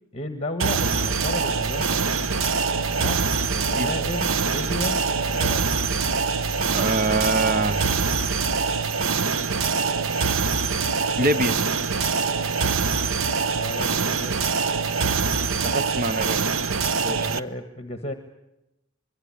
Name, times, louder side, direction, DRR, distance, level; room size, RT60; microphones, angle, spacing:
voice 1, 0.1-2.2 3.0-3.2 3.5-5.6 13.5-14.4 17.1-18.1, left 1 dB, 30° left, 7 dB, 1.4 m, -33 dB
sound 1, 0.6-17.4, right 5 dB, 85° right, 0.9 m, -24 dB
sound 2, 1.0-8.8, left 1 dB, 25° right, 1.6 m, -36 dB
voice 2, 6.7-7.9 11.2-11.6 15.6-16.4 17.0-17.4, right 2 dB, 45° right, 12 dB, 0.9 m, -24 dB
25.0 x 22.5 x 8.6 m, 0.92 s
head